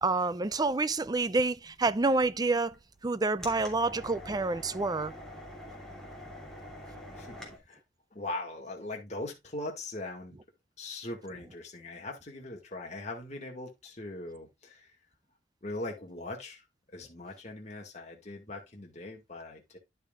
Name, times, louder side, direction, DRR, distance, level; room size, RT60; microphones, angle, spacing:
voice 1, 0.0-2.7 3.0-5.1, right 3 dB, 20° right, 0.5 m, -28 dB
sound 1, 1.0-7.6, left 1 dB, 5° left, 3.0 m, -46 dB
voice 2, 7.2-7.8 8.1-10.4 10.8-15.0 15.6-19.8, left 2 dB, 40° left, 2.1 m, -41 dB
11.0 x 6.6 x 2.4 m
head